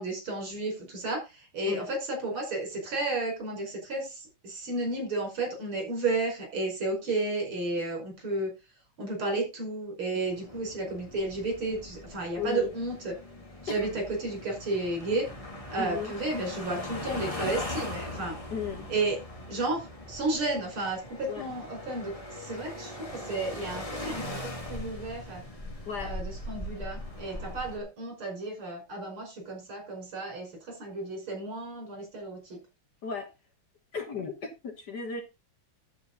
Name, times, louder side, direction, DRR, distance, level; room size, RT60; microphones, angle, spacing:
voice 1, 0.0-8.5 9.0-13.1 13.6-15.3 15.7-18.4 18.9-19.2 19.5-25.4 26.0-32.6, right 2 dB, 80° right, 2 dB, 5.9 m, -32 dB
sound 1, 10.3-27.8, left 1 dB, 15° left, 2.0 m, -40 dB
voice 2, 12.4-12.7 13.7-14.0 15.8-16.1 18.5-18.9 21.3-21.5 25.9-26.2 33.0-33.3 33.9-35.2, left 6 dB, 55° left, 4 dB, 1.9 m, -35 dB
11.0 x 8.0 x 3.8 m, 0.25 s
omnidirectional pair, 2.3 m